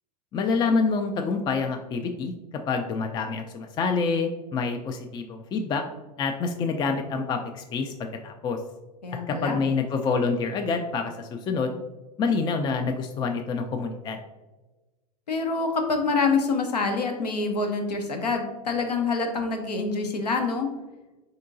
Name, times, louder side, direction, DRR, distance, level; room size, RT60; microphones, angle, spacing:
voice 1, 0.3-2.3 2.7-5.8 6.2-8.6 9.3-11.8 12.2-14.2, left 4 dB, 20° left, 5 dB, 0.3 m, -27 dB
voice 2, 9.0-9.6 15.3-20.7, left 4 dB, 80° left, 4 dB, 0.7 m, -26 dB
4.3 x 3.8 x 2.5 m, 1.1 s
figure-of-eight pair, 85°, 20 cm